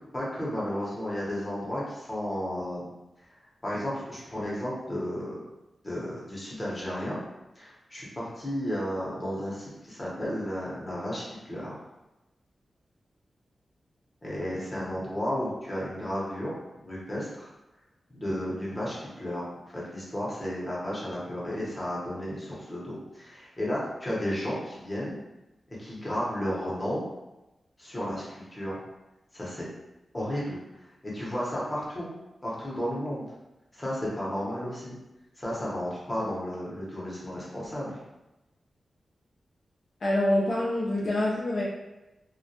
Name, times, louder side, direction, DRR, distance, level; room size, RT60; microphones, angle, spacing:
voice 1, 0.1-2.9 3.3-3.4 3.6-5.4 5.8-7.2 7.6-11.7 14.2-16.5 16.8-17.5 18.1-19.4 19.7-25.1 25.8-27.0 27.8-28.8 29.3-29.7 30.1-30.6 31.0-32.1 32.4-33.2 33.7-35.0 35.4-38.0, equal, 25° left, -6 dB, 0.8 m, -33 dB
voice 2, 40.0-41.6, left 1 dB, 60° left, -6 dB, 0.5 m, -26 dB
2.2 x 2.1 x 2.7 m, 1.0 s
wide cardioid pair, 100°, 0 cm